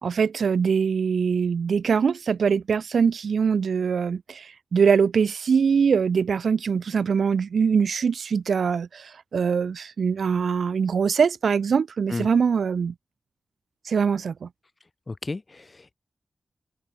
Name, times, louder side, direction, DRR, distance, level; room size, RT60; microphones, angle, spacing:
voice 1, 0.0-12.9 13.9-14.5, right 6 dB, 85° right, 2.0 m, -23 dB
voice 2, 15.1-15.9, left 3 dB, 35° left, 3.2 m, -33 dB
wide cardioid pair, 80°, 0 cm